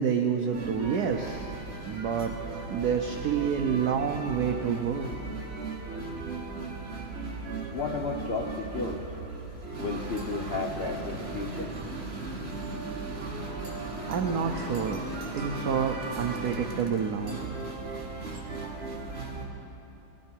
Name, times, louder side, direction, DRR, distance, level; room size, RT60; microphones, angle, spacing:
voice 1, 0.0-1.5 1.8-2.3 2.7-5.1 14.1-15.0 15.3-17.4, right 7 dB, 65° right, 5 dB, 1.0 m, -28 dB
sound 1, 0.5-19.5, right 3 dB, 35° right, 1.6 m, -37 dB
voice 2, 7.7-9.1 9.8-11.7, left 4 dB, 85° left, 2 dB, 0.5 m, -33 dB
20.0 x 13.5 x 4.5 m, 3.0 s
omnidirectional pair, 2.2 m